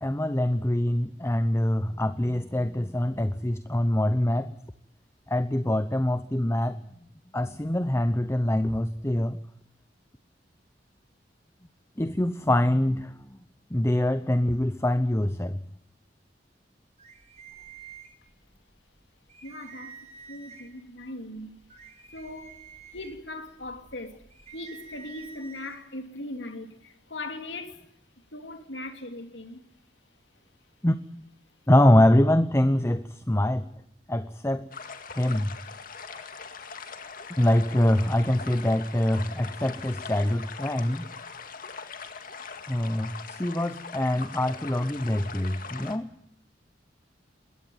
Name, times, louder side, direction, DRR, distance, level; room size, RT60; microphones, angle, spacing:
voice 1, 0.0-4.5 5.3-6.8 7.3-9.4 12.0-13.4 13.7-15.6 30.8-31.0 31.7-33.7 34.1-34.7 35.1-35.6 36.1-36.2 37.4-41.1 42.7-46.1, left 1 dB, 15° left, 0.8 m, -24 dB
sound 1, 17.0-18.6 19.0-19.1 19.3-20.8 21.4-25.8, right 6 dB, 40° right, 8.0 m, -48 dB
voice 2, 19.4-20.0 20.3-21.6 22.1-22.6 22.9-24.2 24.5-27.8 28.3-29.6, left 2 dB, 85° left, 2.8 m, -39 dB
sound 2, 34.7-46.0, left 5 dB, 50° left, 2.2 m, -41 dB
22.0 x 18.0 x 9.3 m
head